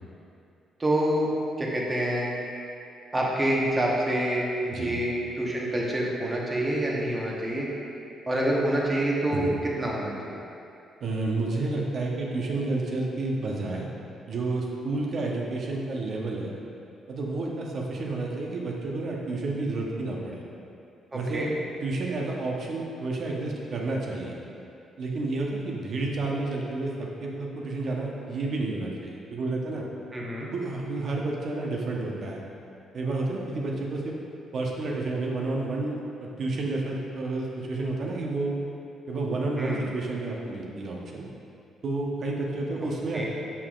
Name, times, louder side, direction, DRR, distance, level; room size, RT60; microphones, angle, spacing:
voice 1, 0.8-1.3 1.6-2.4 3.1-7.7 8.3-10.4 21.1-21.5 30.1-30.5 39.6-39.8 43.1-43.2, right 1 dB, 25° right, -3 dB, 1.1 m, -27 dB
voice 2, 11.0-13.9 14.3-16.5 17.1-20.4 21.1-21.5 21.8-24.4 25.0-29.8 30.5-32.4 32.9-34.1 34.5-38.5 39.1-41.3 41.8-43.2, right 2 dB, 55° right, -2 dB, 0.9 m, -30 dB
6.9 x 5.6 x 2.4 m, 2.6 s
cardioid pair, 90°, 0 cm